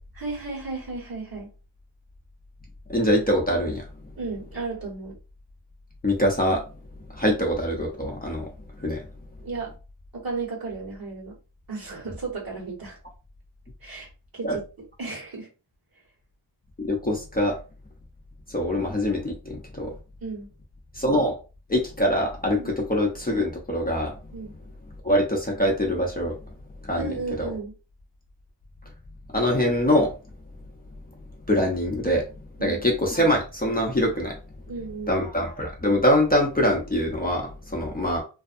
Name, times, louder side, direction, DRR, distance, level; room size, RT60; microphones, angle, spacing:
voice 1, 0.1-1.5 4.2-5.1 9.4-9.7 10.1-11.4 11.7-13.0 13.8-14.6 15.0-15.5 20.2-20.5 22.6-22.7 24.3-24.5 26.9-27.7 32.6-32.8 34.7-35.2, right 4 dB, 45° right, 1.5 m, -34 dB
voice 2, 2.9-3.8 6.0-6.6 7.2-8.5 8.8-9.0 14.4-14.6 16.8-17.6 18.5-19.9 21.0-21.3 21.7-24.1 25.0-26.3 26.9-27.1 27.4-27.5 29.3-30.1 31.5-32.2 32.6-34.3 35.1-38.2, left 1 dB, 20° left, 0.8 m, -23 dB
2.7 x 2.2 x 2.5 m
cardioid pair, 50°, 47 cm